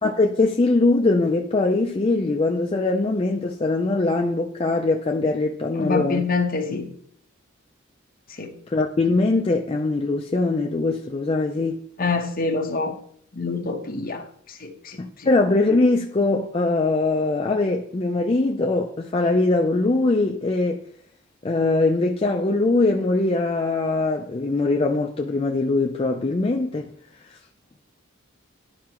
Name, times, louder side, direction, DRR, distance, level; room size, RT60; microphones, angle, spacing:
voice 1, 0.0-6.3 8.7-11.8 15.0-20.8 21.4-26.9, left 2 dB, 30° left, 0.4 m, -22 dB
voice 2, 5.8-6.9 8.4-8.5 12.0-12.9 13.3-14.2 14.6-15.0, left 4 dB, 45° left, 1.0 m, -26 dB
11.5 x 4.6 x 3.0 m
head